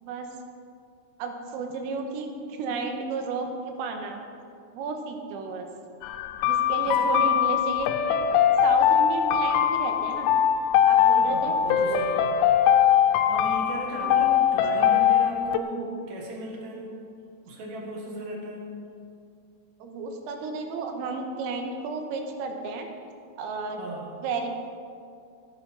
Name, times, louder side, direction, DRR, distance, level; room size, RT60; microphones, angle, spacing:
voice 1, 1.2-4.2 4.7-5.7 6.5-8.2 8.6-10.3 10.8-11.6 13.9-14.1 19.8-22.9 23.4-23.8 24.2-24.5, right 4 dB, 85° right, 4 dB, 3.7 m, -32 dB
sound 1, 6.0-15.6, left 9 dB, 90° left, 3.3 m, -22 dB
voice 2, 6.8-7.3 11.2-12.4 13.3-16.9 17.5-18.7 23.7-24.1, right 2 dB, 60° right, -1 dB, 2.4 m, -36 dB
15.5 x 9.5 x 5.2 m, 2.4 s
omnidirectional pair, 5.9 m